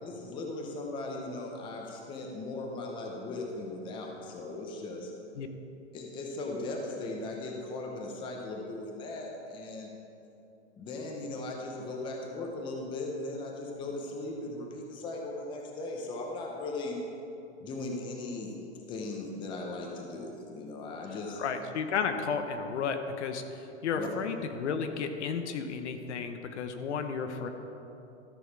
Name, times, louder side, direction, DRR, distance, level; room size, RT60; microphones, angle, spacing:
voice 1, 0.0-5.1 5.9-9.9 10.8-17.0 17.6-18.5 18.9-21.4 23.9-24.1, left 2 dB, 15° left, 0 dB, 0.8 m, -38 dB
voice 2, 21.4-27.5, left 6 dB, 75° left, 7 dB, 1.0 m, -33 dB
13.0 x 6.3 x 4.7 m, 2.8 s
hypercardioid pair, 160°, 35 cm